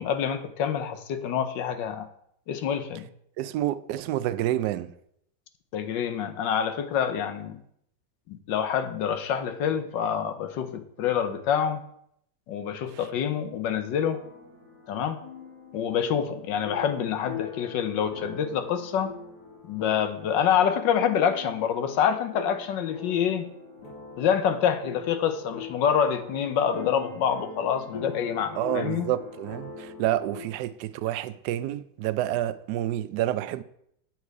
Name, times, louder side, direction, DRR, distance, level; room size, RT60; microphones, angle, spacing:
voice 1, 0.0-2.1 2.5-3.1 5.7-7.6 8.3-11.8 12.5-14.2 14.9-15.2 15.7-19.1 19.7-23.5 24.2-29.1, left 8 dB, 80° left, 1.5 m, -26 dB
voice 2, 3.4-4.9 28.5-33.6, right 13 dB, 75° right, 1.1 m, -28 dB
sound 1, 13.9-30.5, left 5 dB, 60° left, 3.1 m, -42 dB
8.3 x 7.6 x 4.7 m
omnidirectional pair, 2.0 m